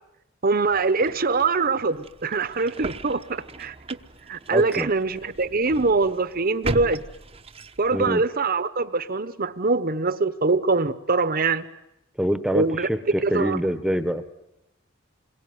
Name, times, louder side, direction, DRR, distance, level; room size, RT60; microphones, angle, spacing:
voice 1, 0.4-3.7 4.3-7.0 7.8-11.7 12.5-12.9 13.2-13.6, right 3 dB, 45° right, 13 dB, 1.1 m, -23 dB
sound 1, 0.6-8.0, right 2 dB, 30° right, 0.9 m, -38 dB
voice 2, 4.5-4.9 7.9-8.2 12.2-14.2, equal, 5° right, 11 dB, 1.1 m, -25 dB
27.5 x 22.5 x 9.6 m, 0.90 s
head